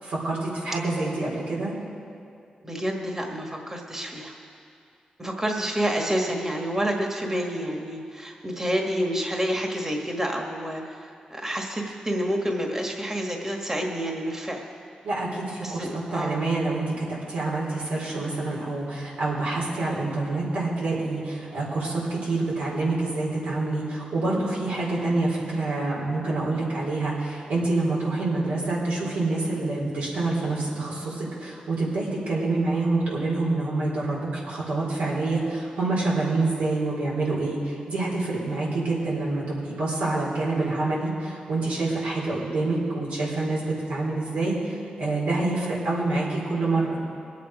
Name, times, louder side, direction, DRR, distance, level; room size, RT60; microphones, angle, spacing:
voice 1, 0.0-1.7 15.0-47.0, right 2 dB, 90° right, -5 dB, 4.1 m, -27 dB
voice 2, 2.6-4.4 5.2-14.6 15.6-16.4, equal, 20° right, 1 dB, 1.6 m, -28 dB
21.5 x 8.5 x 4.9 m, 2.5 s
cardioid pair, 75°, 3 cm